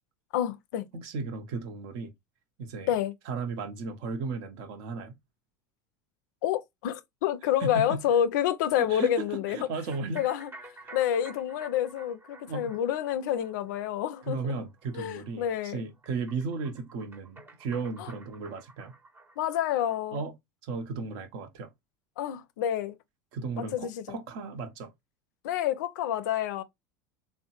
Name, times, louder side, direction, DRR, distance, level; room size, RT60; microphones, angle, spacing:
voice 1, 0.3-0.9 2.9-3.1 6.4-9.7 10.1-10.5 10.9-14.5 15.0-15.8 18.0-18.1 19.4-20.3 22.2-23.0 23.7-24.2 25.4-26.6, left 10 dB, 70° left, 0.4 m, -28 dB
voice 2, 0.9-2.1 2.6-3.0 3.3-5.1 7.6-8.0 8.7-10.3 10.8-11.0 12.5-12.7 14.2-18.9 20.1-20.3 20.6-21.7 23.3-24.9, right 4 dB, 60° right, 0.7 m, -35 dB
sound 1, 9.9-20.0, right 2 dB, 20° right, 0.6 m, -52 dB
3.5 x 2.1 x 2.8 m
hypercardioid pair, 90°, 10 cm